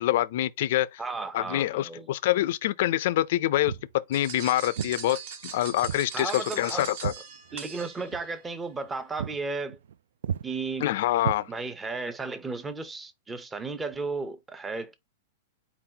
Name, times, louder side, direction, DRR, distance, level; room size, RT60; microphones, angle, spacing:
voice 1, 0.0-1.0 1.3-3.7 4.1-5.2 5.5-7.1 10.8-11.5, left 14 dB, 55° left, 0.4 m, -26 dB
voice 2, 1.0-2.1 6.1-6.9 7.5-9.8 10.4-10.9 11.5-15.0, right 3 dB, 10° right, 0.6 m, -34 dB
Walk footsteps, 3.6-3.9 4.8-5.0 5.8-6.1 6.4-7.8 8.1-8.3 8.7-8.9 9.2-9.4 9.7-10.0 10.2-10.5 11.2-11.9, right 8 dB, 80° right, 0.3 m, -34 dB
sound 1, 4.1-8.4, right 7 dB, 55° right, 1.4 m, -41 dB
4.4 x 3.9 x 2.8 m
supercardioid pair, 160°, 0 cm